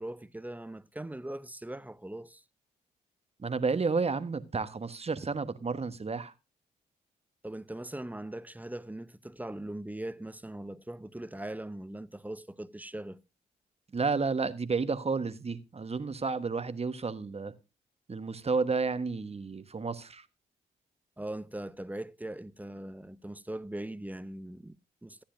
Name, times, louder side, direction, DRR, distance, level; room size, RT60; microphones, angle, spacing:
voice 1, 0.0-2.4 7.4-13.2 21.2-25.2, right 1 dB, 10° right, 0.7 m, -40 dB
voice 2, 3.4-6.3 13.9-17.5 18.1-20.2, right 4 dB, 35° right, 1.2 m, -31 dB
14.0 x 10.0 x 2.6 m
hypercardioid pair, 40°, 18 cm